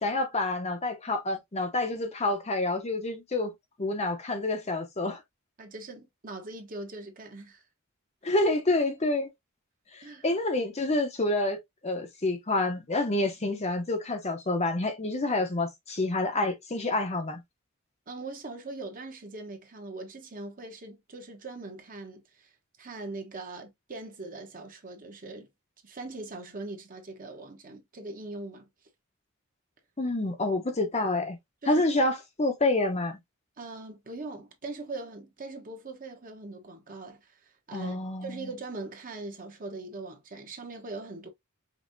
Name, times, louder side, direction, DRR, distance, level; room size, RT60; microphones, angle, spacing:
voice 1, 0.0-3.5 3.8-5.2 8.2-9.3 9.9-17.4 30.0-31.4 31.7-33.2 37.7-38.5, left 2 dB, 30° left, 0.8 m, -28 dB
voice 2, 5.6-7.6 10.0-10.3 18.1-22.5 22.8-25.5 25.8-28.7 31.6-31.9 33.6-41.3, right 3 dB, 40° right, 1.1 m, -41 dB
5.2 x 2.7 x 2.6 m
head